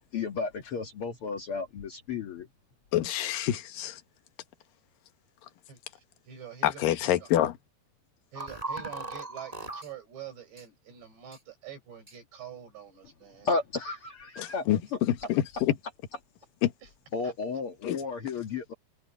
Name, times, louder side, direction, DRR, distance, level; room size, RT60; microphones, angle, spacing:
voice 1, 0.1-2.5 13.4-15.0 17.1-18.7, left 4 dB, 80° left, 1.2 m, -33 dB
voice 2, 2.9-4.0 6.6-7.6 14.4-15.7 16.6-16.7 17.8-18.0, left 13 dB, 65° left, 2.7 m, -27 dB
voice 3, 5.7-7.3 8.3-13.5 16.8-16.9 17.2-17.3, right 8 dB, 80° right, 7.7 m, -46 dB
sound 1, 8.4-9.9 10.6-10.7 11.3-11.4 12.1-12.2, right 2 dB, 10° right, 5.5 m, -38 dB
omnidirectional pair, 4.9 m